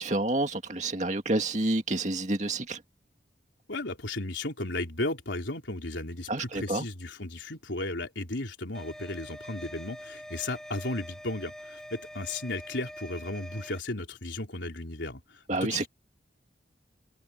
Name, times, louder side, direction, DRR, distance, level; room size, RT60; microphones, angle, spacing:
voice 1, 0.0-2.8 6.3-6.8 15.5-15.9, right 2 dB, 40° right, 2.2 m, -29 dB
voice 2, 3.7-15.9, left 2 dB, 85° left, 3.9 m, -35 dB
sound 1, 8.7-13.8, equal, 5° left, 6.2 m, -45 dB
head